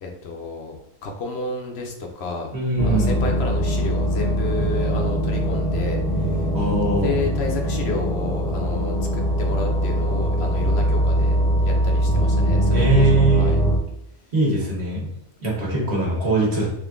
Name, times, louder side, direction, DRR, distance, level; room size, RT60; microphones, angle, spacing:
voice 1, 0.0-2.5 2.8-6.5 7.0-13.6, left 3 dB, 65° left, 2 dB, 0.9 m, -31 dB
voice 2, 2.5-3.2 6.5-7.2 12.7-13.6 14.3-15.1 15.4-16.7, right 2 dB, 60° right, -3 dB, 1.5 m, -21 dB
sound 1, 2.8-13.8, equal, 30° left, 0.4 m, -21 dB
3.6 x 2.6 x 3.5 m, 0.84 s
omnidirectional pair, 1.2 m